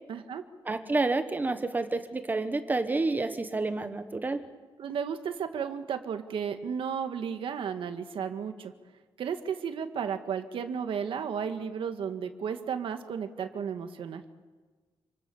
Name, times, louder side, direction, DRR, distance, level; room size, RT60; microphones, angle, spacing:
voice 1, 0.1-0.4 4.8-8.7 9.2-14.2, right 7 dB, 70° right, 7 dB, 1.9 m, -33 dB
voice 2, 0.6-4.4, right 3 dB, 20° right, 8 dB, 1.3 m, -29 dB
28.0 x 25.0 x 7.2 m, 1.4 s
wide cardioid pair, 175°, 9 cm